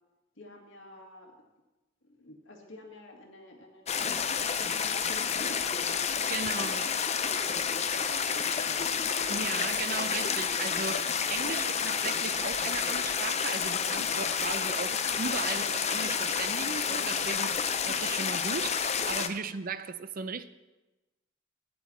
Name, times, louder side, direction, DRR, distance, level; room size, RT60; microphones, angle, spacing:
voice 1, 0.4-1.4 2.0-4.1 4.6-5.9 6.5-6.9 7.2-8.9 11.5-11.8, left 1 dB, 85° left, 2.1 m, -49 dB
sound 1, 3.9-19.3, left 6 dB, 35° left, 0.6 m, -30 dB
voice 2, 6.3-6.9 9.3-17.5 17.9-20.5, right 5 dB, 50° right, 0.5 m, -37 dB
12.0 x 9.3 x 4.2 m
head